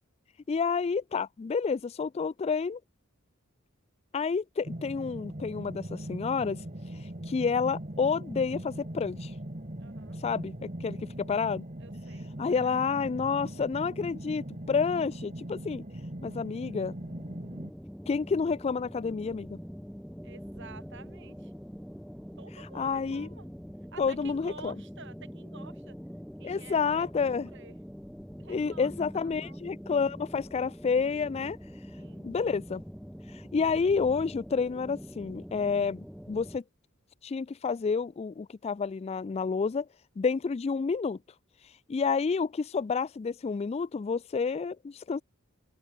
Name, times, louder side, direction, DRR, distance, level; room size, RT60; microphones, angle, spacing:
voice 1, 0.5-2.8 4.1-6.6 7.3-9.3 10.2-11.6 12.4-15.8 16.2-16.9 18.1-19.6 22.7-23.3 24.0-24.7 26.4-27.5 28.5-31.6 32.2-32.8 33.5-36.6 37.2-39.9 40.2-41.2 41.9-45.2, left 5 dB, 30° left, 0.3 m, -29 dB
sound 1, 4.6-17.7, right 1 dB, 35° right, 2.3 m, -40 dB
voice 2, 9.8-10.2 11.8-12.8 20.2-21.5 22.4-23.5 23.9-26.0 26.4-27.8 28.4-29.6 32.0-32.3, right 4 dB, 60° right, 4.0 m, -51 dB
sound 2, 17.0-36.6, equal, ahead, 4.4 m, -44 dB
open air
head